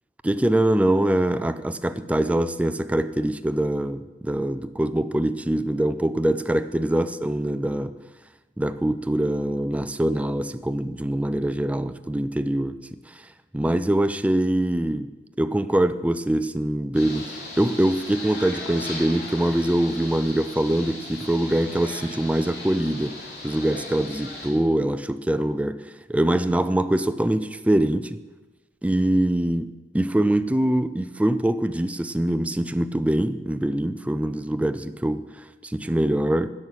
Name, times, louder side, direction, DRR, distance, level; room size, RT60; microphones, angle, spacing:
voice 1, 0.2-7.9 8.6-13.3 13.5-15.1 15.4-23.2 23.4-28.2 28.8-36.5, right 1 dB, 10° right, 11 dB, 0.4 m, -24 dB
sound 1, 16.9-24.5, left 2 dB, 65° left, 4.1 m, -37 dB
11.0 x 6.1 x 8.7 m, 1.2 s
head